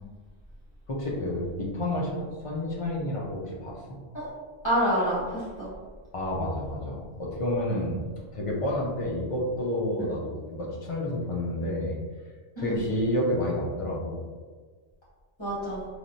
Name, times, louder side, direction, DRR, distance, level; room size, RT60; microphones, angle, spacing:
voice 1, 0.9-3.8 6.1-8.0 8.3-12.0 12.6-14.2, left 1 dB, 45° left, -3 dB, 0.4 m, -29 dB
voice 2, 4.6-5.7 10.0-10.1 12.6-12.8 15.4-15.9, equal, 25° left, -12 dB, 1.2 m, -27 dB
3.1 x 2.4 x 2.6 m, 1.5 s
omnidirectional pair, 1.2 m